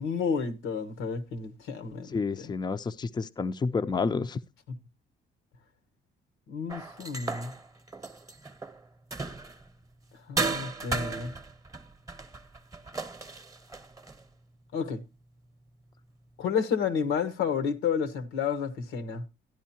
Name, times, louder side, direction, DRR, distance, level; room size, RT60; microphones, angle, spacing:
voice 1, 0.0-2.2 6.5-7.5 10.3-11.3 14.7-15.0 16.4-19.2, left 6 dB, 90° left, 1.2 m, -30 dB
voice 2, 2.1-4.4, left 4 dB, 20° left, 0.5 m, -29 dB
sound 1, 6.7-9.7 10.4-14.2, right 3 dB, 15° right, 0.9 m, -35 dB
12.0 x 10.0 x 2.8 m
cardioid pair, 90°, 20 cm